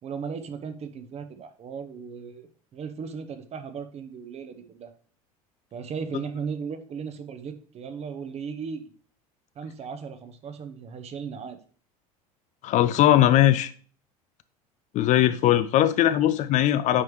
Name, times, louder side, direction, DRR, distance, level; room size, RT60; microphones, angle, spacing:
voice 1, 0.0-4.9 5.7-8.9 9.5-11.6, right 6 dB, 35° right, 1.0 m, -36 dB
voice 2, 12.6-13.7 14.9-17.0, left 12 dB, 40° left, 0.5 m, -20 dB
9.6 x 4.7 x 3.2 m
figure-of-eight pair, 70°, 19 cm